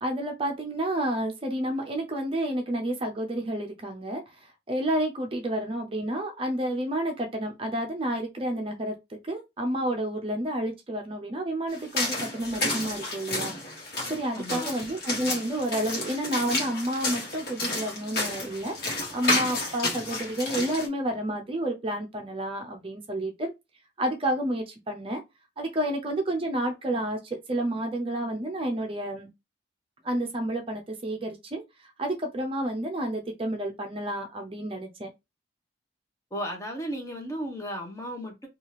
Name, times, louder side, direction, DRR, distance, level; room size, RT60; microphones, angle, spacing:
voice 1, 0.0-13.5 14.1-18.8 19.1-23.5 24.0-25.2 25.6-29.3 30.0-31.6 32.0-35.1, right 1 dB, 30° right, 0.5 m, -30 dB
sound 1, 11.7-20.9, left 2 dB, 55° left, 1.1 m, -31 dB
voice 2, 14.4-14.7 36.3-38.5, equal, 15° left, 0.8 m, -34 dB
2.7 x 2.4 x 3.1 m
head